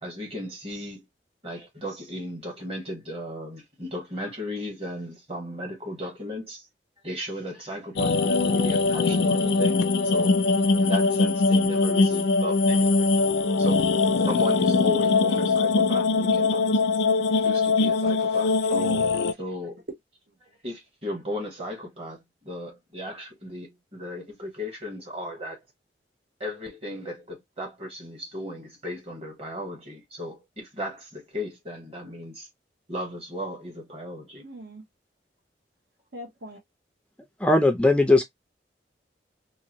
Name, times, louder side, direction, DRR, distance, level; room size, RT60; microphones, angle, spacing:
voice 1, 0.0-1.0 1.4-6.6 7.0-10.4 10.8-13.1 13.6-13.9 14.2-16.7 17.4-18.5 19.4-19.8 20.6-25.6 26.4-32.5 32.9-34.5, left 1 dB, 35° right, 1.6 m, -36 dB
sound 1, 8.0-19.3, left 3 dB, 70° left, 0.4 m, -22 dB
voice 2, 18.0-19.3 19.6-19.7 20.3-20.5 34.4-34.8 36.1-36.6, equal, 70° right, 1.1 m, -38 dB
voice 3, 37.4-38.2, left 2 dB, 5° left, 0.4 m, -18 dB
2.8 x 2.5 x 2.9 m
head